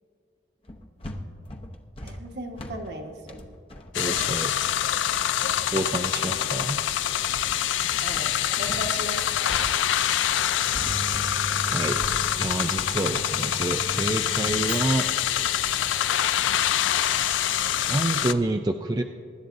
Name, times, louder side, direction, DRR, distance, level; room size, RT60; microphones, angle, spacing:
sound 1, 0.6-8.9 9.2-17.9, left 1 dB, 30° left, 0.8 m, -42 dB
voice 1, 2.0-3.4 7.9-9.3, right 1 dB, 60° right, 2 dB, 1.4 m, -37 dB
sound 2, 3.9-18.3, left 10 dB, 80° left, 0.4 m, -25 dB
voice 2, 4.0-4.5 5.7-6.8 11.7-12.0 12.4-15.1 17.9-19.0, right 2 dB, 20° right, 5 dB, 0.3 m, -28 dB
Microwave oven, 10.4-15.2, right 1 dB, 75° right, 1.2 m, -37 dB
24.0 x 11.5 x 2.6 m, 2.4 s
head